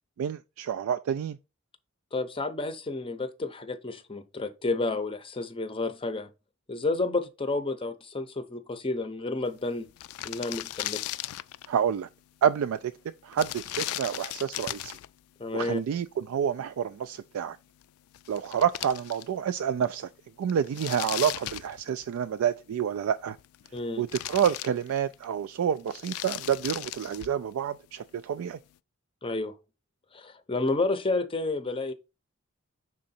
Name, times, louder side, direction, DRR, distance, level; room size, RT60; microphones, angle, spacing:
voice 1, 0.2-1.4 11.7-12.1 12.4-12.9 13.2-15.0 15.5-17.6 18.3-20.1 20.4-23.4 24.0-28.6, right 8 dB, 75° right, 0.3 m, -28 dB
voice 2, 2.1-6.3 6.7-9.9 10.2-11.0 15.4-15.8 23.7-24.0 29.2-29.5 30.1-31.9, left 3 dB, 25° left, 0.6 m, -30 dB
sound 1, 9.6-9.7 9.9-11.8 13.3-15.1 17.8-17.9 18.1-19.5 19.8-19.9 20.5-22.3 23.2-23.8 24.1-25.2 25.8-27.4, left 15 dB, 85° left, 0.3 m, -37 dB
6.1 x 3.8 x 4.2 m
head